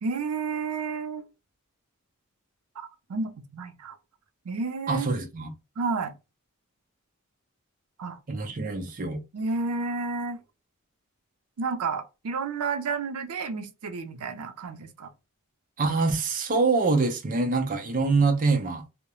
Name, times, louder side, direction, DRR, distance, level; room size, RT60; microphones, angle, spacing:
voice 1, 0.0-1.2 2.8-4.0 4.4-5.1 5.8-6.1 8.0-8.2 9.3-10.4 11.6-15.1, right 4 dB, 85° right, 0.5 m, -31 dB
voice 2, 4.9-5.5 8.3-9.2 15.8-18.8, right 3 dB, 40° right, 0.5 m, -25 dB
2.3 x 2.1 x 2.9 m
head